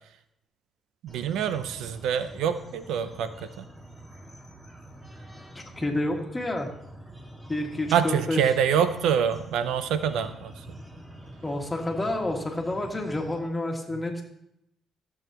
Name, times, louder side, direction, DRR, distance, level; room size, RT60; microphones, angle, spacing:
voice 1, 1.0-3.6 7.9-10.5, right 8 dB, 85° right, 11 dB, 0.6 m, -26 dB
sound 1, 1.1-13.4, right 1 dB, 20° right, 1.8 m, -46 dB
voice 2, 5.6-6.7 7.5-8.4 11.4-14.2, left 1 dB, 15° left, 1 dB, 1.8 m, -29 dB
15.0 x 7.3 x 2.9 m, 0.79 s
cardioid pair, 90°, 0 cm